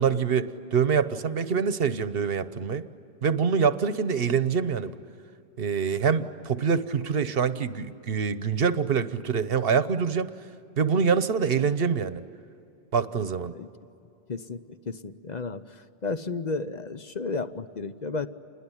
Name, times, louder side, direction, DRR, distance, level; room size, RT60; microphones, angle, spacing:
voice 1, 0.0-2.8 3.2-4.9 5.6-10.3 10.8-12.2 12.9-13.5, right 6 dB, 55° right, 12 dB, 1.1 m, -25 dB
voice 2, 14.3-14.6 14.9-15.6 16.0-18.3, left 4 dB, 40° left, 11 dB, 0.9 m, -32 dB
28.5 x 21.0 x 10.0 m, 2.6 s
omnidirectional pair, 1.2 m